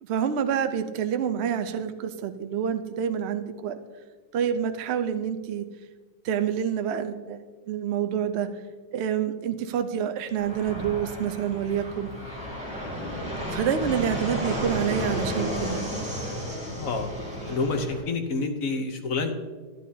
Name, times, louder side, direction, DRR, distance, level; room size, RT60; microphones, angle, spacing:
voice 1, 0.0-3.8 4.3-5.7 6.2-8.5 8.9-12.1 13.5-15.8, right 8 dB, 75° right, 9 dB, 0.6 m, -27 dB
Fixed-wing aircraft airplane, 10.4-18.0, equal, 5° right, 2.6 m, -32 dB
voice 2, 16.7-17.1 17.5-19.3, left 3 dB, 60° left, 5 dB, 1.1 m, -28 dB
11.5 x 10.5 x 2.8 m, 1.4 s
omnidirectional pair, 1.9 m